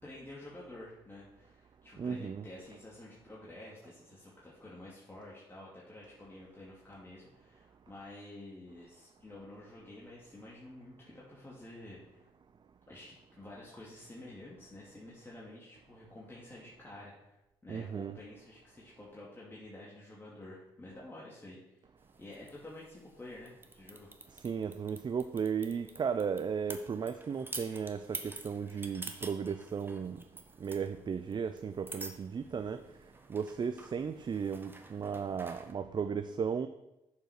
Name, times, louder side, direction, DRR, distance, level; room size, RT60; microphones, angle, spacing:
voice 1, 0.0-12.3 12.9-17.4 17.6-21.8 22.2-24.1, left 1 dB, 20° left, -6 dB, 2.5 m, -50 dB
voice 2, 2.0-2.4 17.7-18.2 24.4-30.2 30.6-32.8 33.3-36.7, right 6 dB, 40° right, 10 dB, 0.5 m, -35 dB
sound 1, 22.0-35.7, right 2 dB, 20° right, 1.3 m, -49 dB
6.8 x 5.5 x 6.0 m, 0.92 s
hypercardioid pair, 50°, 12 cm